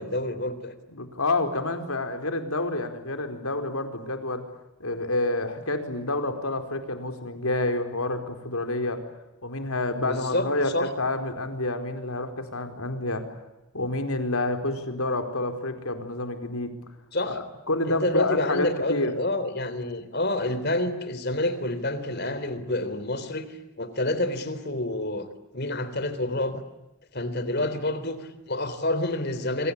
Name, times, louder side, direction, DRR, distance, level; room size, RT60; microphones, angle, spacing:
voice 1, 0.0-0.7 10.0-10.5 10.7-10.9 17.1-17.4 17.8-25.3 25.5-26.6 27.1-29.7, left 1 dB, 45° left, 12 dB, 3.6 m, -28 dB
voice 2, 0.9-4.4 4.8-9.0 9.4-13.3 13.7-16.7 17.3-19.1, left 2 dB, 75° left, 7 dB, 4.5 m, -28 dB
27.0 x 26.0 x 8.4 m, 0.98 s
head